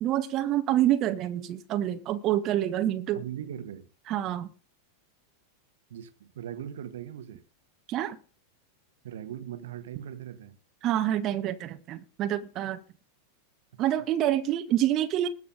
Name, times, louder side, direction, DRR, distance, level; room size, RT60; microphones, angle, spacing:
voice 1, 0.0-3.2 4.1-4.5 7.9-8.2 10.8-12.8 13.8-15.3, right 12 dB, 35° right, 1.3 m, -27 dB
voice 2, 3.1-3.9 5.9-7.4 9.0-10.6 13.7-13.8, right 10 dB, 60° right, 1.5 m, -39 dB
20.5 x 6.9 x 3.9 m
figure-of-eight pair, 90°, 0 cm